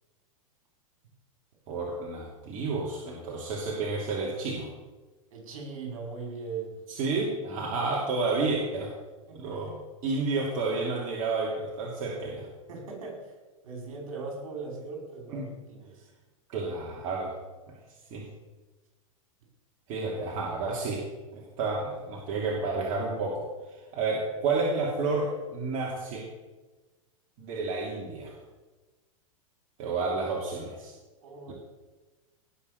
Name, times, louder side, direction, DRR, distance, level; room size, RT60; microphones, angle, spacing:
voice 1, 1.7-4.7 6.9-8.9 9.3-9.7 10.0-12.5 15.3-15.5 16.5-17.3 18.1-18.3 19.9-21.0 21.3-23.5 23.9-26.2 27.4-28.3 29.8-30.9, right 3 dB, 50° right, -2 dB, 2.8 m, -30 dB
voice 2, 5.3-6.8 7.1-7.2 9.3-9.8 12.7-13.3 13.6-16.1 31.2-31.5, right 4 dB, 70° right, 1 dB, 5.3 m, -39 dB
18.5 x 6.4 x 6.8 m, 1.2 s
hypercardioid pair, 115°, 18 cm